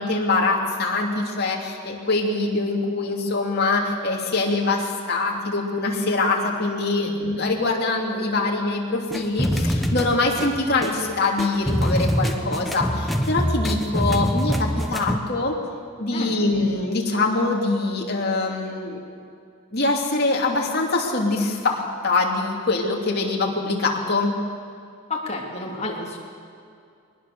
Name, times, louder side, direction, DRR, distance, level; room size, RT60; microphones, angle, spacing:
voice 1, 0.0-15.6 16.0-19.0 19.7-24.3, left 3 dB, 45° left, -1 dB, 2.8 m, -24 dB
sound 1, 9.1-15.2, equal, ahead, 1.1 m, -25 dB
voice 2, 25.1-26.2, left 2 dB, 30° left, -1 dB, 2.9 m, -31 dB
22.0 x 19.5 x 6.9 m, 2.4 s
head